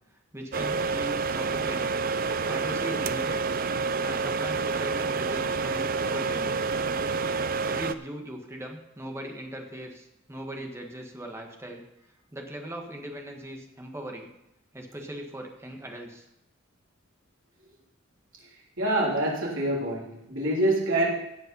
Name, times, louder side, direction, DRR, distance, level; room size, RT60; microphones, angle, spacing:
voice 1, 0.3-2.0 2.4-3.4 4.0-6.6 7.6-11.8 12.3-14.3 14.7-16.2, right 1 dB, 15° right, 2 dB, 1.5 m, -39 dB
sound 1, 0.5-7.9, right 4 dB, 40° right, 0.4 m, -28 dB
voice 2, 18.8-21.1, right 1 dB, 70° right, -4 dB, 3.4 m, -26 dB
16.5 x 5.6 x 5.5 m, 0.86 s
head